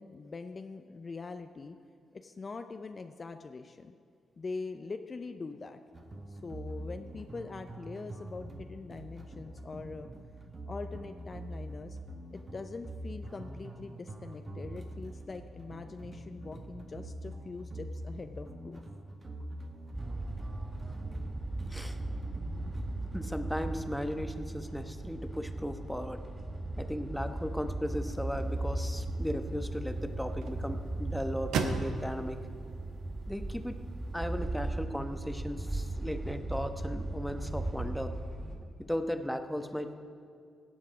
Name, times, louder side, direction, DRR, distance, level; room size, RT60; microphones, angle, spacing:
voice 1, 0.0-1.8 2.1-3.9 4.4-5.8 6.3-10.1 10.7-12.0 12.3-18.8, left 4 dB, 40° left, 7 dB, 0.6 m, -43 dB
sound 1, 5.9-23.8, right 1 dB, 40° right, 1.5 m, -44 dB
sound 2, 19.9-38.6, right 2 dB, 25° right, 3.3 m, -37 dB
voice 2, 23.1-26.2 26.8-32.4 33.3-33.8 34.1-38.1 38.8-39.9, equal, 5° left, 7 dB, 1.1 m, -36 dB
sound 3, 28.0-34.1, right 5 dB, 70° right, 0.8 m, -40 dB
17.0 x 7.4 x 5.0 m, 2.3 s
hypercardioid pair, 40°, 0 cm